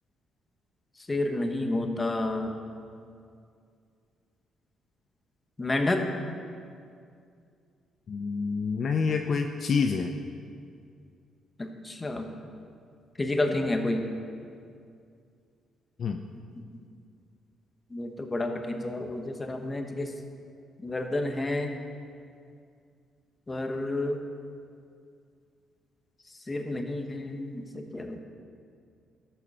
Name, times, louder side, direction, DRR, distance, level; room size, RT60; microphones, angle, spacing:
voice 1, 1.1-2.5 5.6-6.1 11.6-12.3 13.2-14.1 17.9-20.1 20.8-21.7 23.5-24.2 26.5-28.2, left 2 dB, 20° left, 5 dB, 1.2 m, -30 dB
voice 2, 8.1-10.2 16.0-16.2, left 5 dB, 55° left, 5 dB, 0.5 m, -27 dB
13.0 x 6.9 x 5.5 m, 2.3 s
cardioid pair, 90°, 0 cm